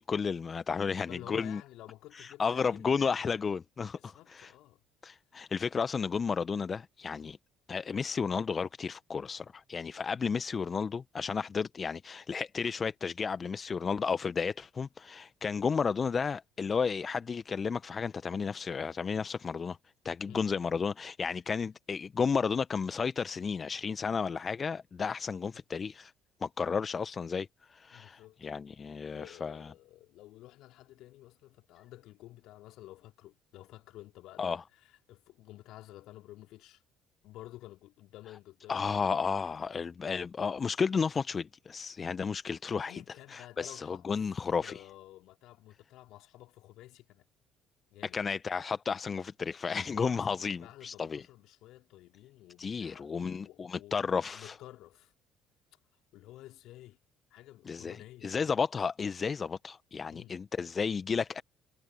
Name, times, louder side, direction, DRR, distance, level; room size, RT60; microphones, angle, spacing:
voice 1, 0.0-1.6 2.1-4.5 5.0-7.4 7.7-19.8 20.0-26.1 26.4-29.6 34.4-34.6 38.7-42.9 43.3-44.7 48.1-51.2 52.6-54.6 57.7-58.0 58.2-61.4, left 5 dB, 35° left, 1.1 m, -32 dB
voice 2, 1.1-3.5 4.0-4.8 7.2-7.4 20.3-20.5 25.5-25.6 27.9-28.4 29.1-36.8 37.2-38.9 42.9-44.2 44.6-47.2 47.9-48.2 49.7-55.1 56.1-57.0 57.3-58.6 60.1-60.4, left 15 dB, 60° left, 3.4 m, -52 dB
figure-of-eight pair, 55°, 0 cm